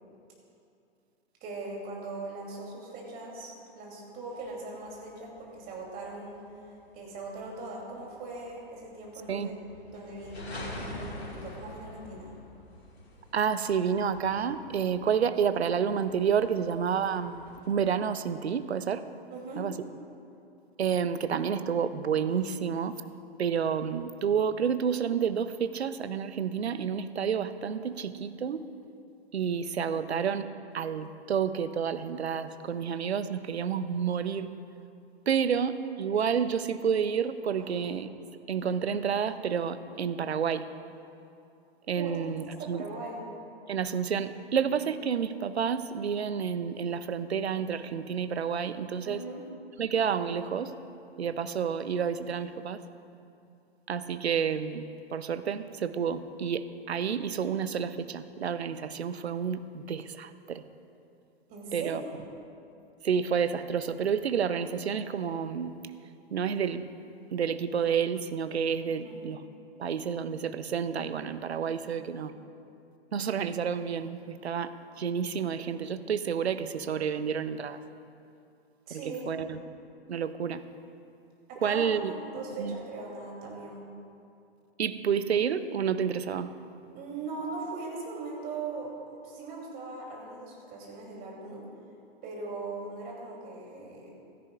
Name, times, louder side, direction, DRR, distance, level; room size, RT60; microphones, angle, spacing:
voice 1, 1.4-6.4 6.9-9.5 9.9-12.3 19.3-19.6 29.9-30.0 37.6-37.7 41.9-42.1 42.6-43.2 49.0-49.4 61.5-62.2 69.0-69.2 71.8-72.0 78.9-79.3 81.5-83.8 86.9-88.9 89.2-91.6 92.2-94.1, right 3 dB, 30° right, -2 dB, 3.0 m, -40 dB
sound 1, 4.3-17.7, left 2 dB, 85° left, 2.0 m, -47 dB
voice 2, 13.3-19.0 19.6-19.8 20.8-23.0 23.4-28.6 29.3-30.4 30.7-34.5 35.3-38.1 38.5-40.7 41.9-42.8 43.7-49.2 49.8-50.7 51.2-52.8 53.9-60.6 61.7-62.0 63.0-65.7 66.3-66.9 67.3-69.4 69.8-72.3 73.1-77.8 78.9-79.6 80.1-80.6 81.6-82.1 82.6-82.8 84.8-86.5, right 7 dB, 80° right, 12 dB, 0.7 m, -30 dB
16.0 x 13.5 x 2.4 m, 2.6 s
figure-of-eight pair, 115°, 32 cm